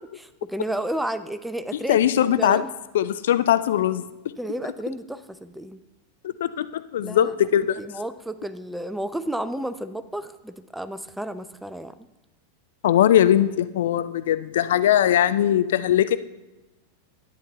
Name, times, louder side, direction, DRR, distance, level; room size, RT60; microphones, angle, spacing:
voice 1, 0.4-2.0 2.4-2.7 4.4-5.8 7.0-7.3 7.8-11.9, right 1 dB, 5° right, 12 dB, 0.4 m, -31 dB
voice 2, 1.9-2.6 2.9-4.0 6.2-7.8 12.8-16.2, left 11 dB, 60° left, 13 dB, 0.4 m, -20 dB
10.5 x 9.2 x 3.3 m, 1.0 s
figure-of-eight pair, 90°, 0 cm